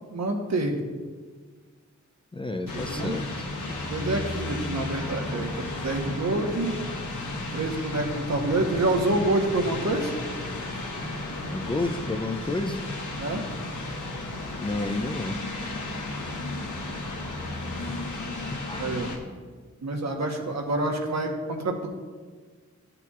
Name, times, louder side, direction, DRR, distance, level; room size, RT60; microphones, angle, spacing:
voice 1, 0.1-0.8 2.7-3.1 3.9-6.7 7.5-10.1 13.2-13.5 18.8-19.1 19.8-21.9, right 2 dB, 65° right, 3 dB, 1.1 m, -27 dB
voice 2, 2.3-3.5 11.5-12.8 14.6-15.4 18.7-18.9, left 2 dB, 15° left, 5 dB, 0.4 m, -30 dB
sound 1, 2.7-19.2, left 2 dB, 80° left, 1.3 m, -34 dB
13.0 x 6.8 x 2.4 m, 1.5 s
wide cardioid pair, 130°, 30 cm